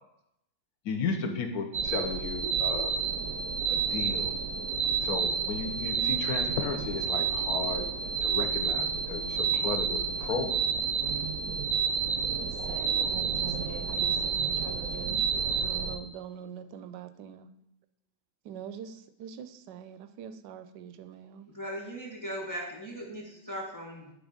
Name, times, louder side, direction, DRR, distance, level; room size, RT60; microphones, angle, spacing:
voice 1, 0.8-2.9 3.7-4.3 5.0-7.8 8.2-10.6, left 4 dB, 65° left, 5 dB, 1.2 m, -34 dB
sound 1, 1.7-16.0, right 6 dB, 70° right, 0.9 m, -30 dB
voice 2, 12.1-17.5 18.4-21.5, right 8 dB, 85° right, 11 dB, 1.2 m, -44 dB
voice 3, 21.5-24.1, equal, 15° left, -1 dB, 1.1 m, -38 dB
9.9 x 3.4 x 5.0 m, 0.80 s
omnidirectional pair, 1.8 m